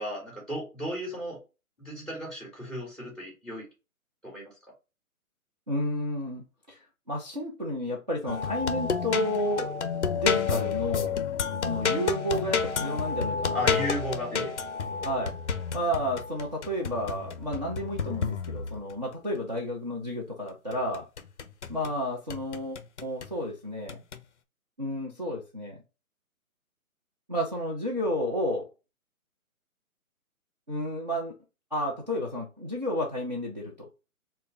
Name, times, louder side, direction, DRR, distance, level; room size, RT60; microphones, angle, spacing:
voice 1, 0.0-1.4 1.8-3.7 4.2-4.5 13.5-14.5, left 1 dB, 10° right, -3 dB, 2.1 m, -34 dB
voice 2, 5.7-6.8 7.1-9.7 10.1-11.2 11.6-14.0 14.3-14.5 15.0-15.3 15.7-21.0 21.7-24.0 24.8-25.8 27.3-28.7 30.7-31.3 31.7-33.9, left 1 dB, 30° right, -3 dB, 0.6 m, -31 dB
sound 1, 8.3-18.9 20.7-21.9 22.3-23.3 23.9-24.2, left 6 dB, 55° left, 0.5 m, -30 dB
3.4 x 2.2 x 3.6 m, 0.29 s
hypercardioid pair, 170°, 43 cm